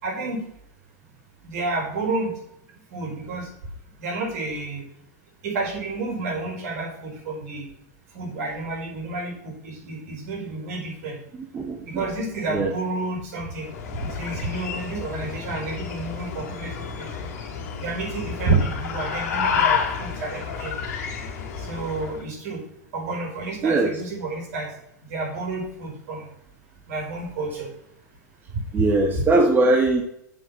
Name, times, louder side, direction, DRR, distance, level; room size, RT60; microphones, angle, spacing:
voice 1, 0.0-0.4 1.4-2.3 2.9-3.5 4.0-4.8 5.4-7.7 8.1-11.2 11.8-13.7 14.0-17.1 17.8-20.7 21.6-22.6 22.9-24.7 25.1-26.3 26.9-27.7, right 3 dB, 60° right, 0 dB, 4.7 m, -30 dB
voice 2, 11.3-12.0 12.5-12.7 23.6-23.9 28.7-30.0, right 2 dB, 20° right, 2 dB, 1.5 m, -21 dB
sound 1, 13.6-22.2, left 6 dB, 60° left, 2.3 m, -30 dB
7.1 x 6.4 x 7.4 m, 0.76 s
hypercardioid pair, 110°, 9 cm